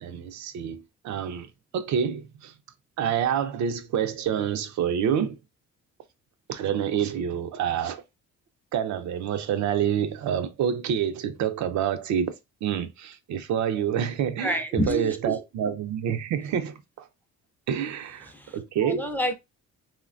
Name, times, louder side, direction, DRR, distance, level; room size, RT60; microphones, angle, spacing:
voice 1, 0.0-1.5 1.7-2.5 3.0-5.4 6.5-8.0 8.7-12.3 12.6-17.1 17.7-19.1, right 8 dB, 70° right, 0.5 m, -27 dB
voice 2, 14.4-15.4 18.2-19.3, equal, 5° left, 0.4 m, -29 dB
3.1 x 2.2 x 2.4 m
cardioid pair, 90°, 30 cm